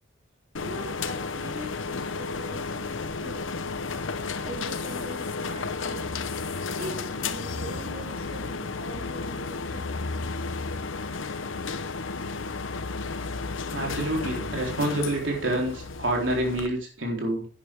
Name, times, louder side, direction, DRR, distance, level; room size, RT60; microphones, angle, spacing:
sound 1, 0.5-16.7, left 4 dB, 90° left, 0.9 m, -33 dB
voice 1, 0.6-3.5 4.4-6.0 6.8-9.9, right 1 dB, 50° right, -2 dB, 2.4 m, -41 dB
voice 2, 13.7-17.5, right 1 dB, 75° right, 0 dB, 3.8 m, -27 dB
11.5 x 9.7 x 3.6 m, 0.42 s
head